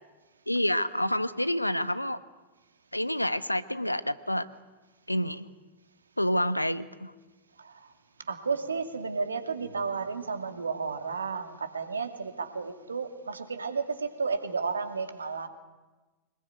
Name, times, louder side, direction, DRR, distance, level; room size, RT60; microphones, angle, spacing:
voice 1, 0.5-2.2 2.9-4.5 5.1-5.5 6.2-7.1, left 1 dB, 85° left, 15 dB, 1.0 m, -28 dB
voice 2, 8.3-15.5, right 5 dB, 75° right, 7 dB, 2.5 m, -32 dB
25.0 x 21.0 x 9.4 m, 1.2 s
figure-of-eight pair, 90°, 0 cm